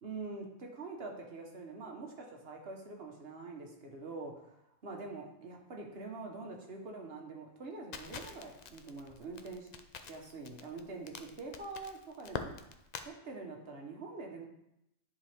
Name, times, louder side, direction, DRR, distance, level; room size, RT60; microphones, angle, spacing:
voice 1, 0.0-4.6 4.8-9.7 10.0-12.5 13.0-14.5, right 3 dB, 50° right, 1 dB, 1.4 m, -45 dB
Crackle, 7.9-13.1, left 6 dB, 90° left, 0.3 m, -45 dB
10.5 x 4.7 x 3.5 m, 0.82 s
omnidirectional pair, 1.4 m